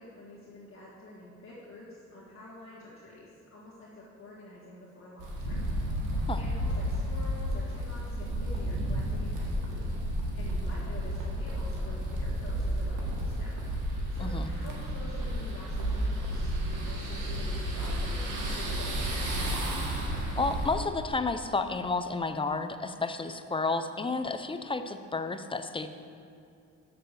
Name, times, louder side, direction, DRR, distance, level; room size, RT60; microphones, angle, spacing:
voice 1, 0.0-6.0 6.4-19.6, left 2 dB, 45° left, -7 dB, 1.6 m, -48 dB
sound 1, 5.2-20.7, equal, 85° right, 1.7 m, -32 dB
voice 2, 20.4-25.9, left 3 dB, 20° left, 9 dB, 0.5 m, -31 dB
6.8 x 6.6 x 6.6 m, 2.5 s
cardioid pair, 90°, 30 cm